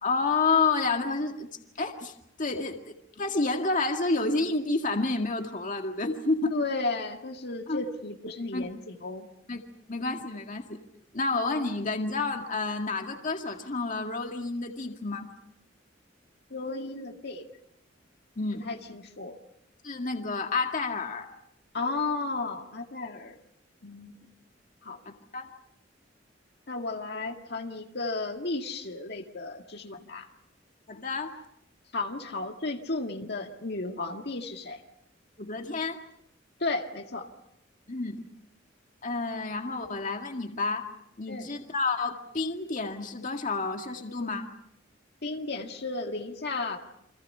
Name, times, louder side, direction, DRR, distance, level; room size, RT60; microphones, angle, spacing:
voice 1, 0.0-1.5 1.8-2.1 2.4-6.6 7.7-7.8 8.5-8.7 9.5-9.6 9.9-10.8 11.1-15.3 18.4-18.6 19.8-21.3 25.1-25.5 30.9-31.3 35.4-36.0 37.9-38.2 39.0-40.9 41.2-44.5, left 3 dB, 45° left, 4 dB, 2.0 m, -29 dB
voice 2, 6.5-9.3 16.5-17.5 18.6-19.4 21.7-23.4 23.8-24.2 24.8-25.0 26.7-30.3 31.9-34.8 36.6-37.3 41.3-41.5 45.2-46.8, left 3 dB, 60° left, 4 dB, 2.0 m, -34 dB
29.5 x 25.0 x 5.6 m, 0.76 s
head